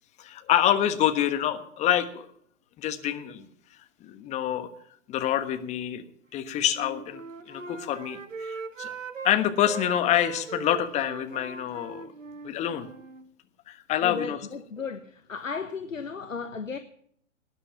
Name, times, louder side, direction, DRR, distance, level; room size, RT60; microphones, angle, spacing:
voice 1, 0.2-2.3 2.8-3.5 4.0-4.7 5.1-6.0 6.3-8.9 9.2-12.1 12.4-12.9 13.7-14.5, left 11 dB, 20° left, 1.3 m, -27 dB
Wind instrument woodwind instrument, 6.6-9.3 9.6-13.3, right 4 dB, 80° right, 1.5 m, -40 dB
voice 2, 14.0-16.8, left 5 dB, 80° left, 1.3 m, -35 dB
19.0 x 10.0 x 6.0 m
figure-of-eight pair, 120°, 38 cm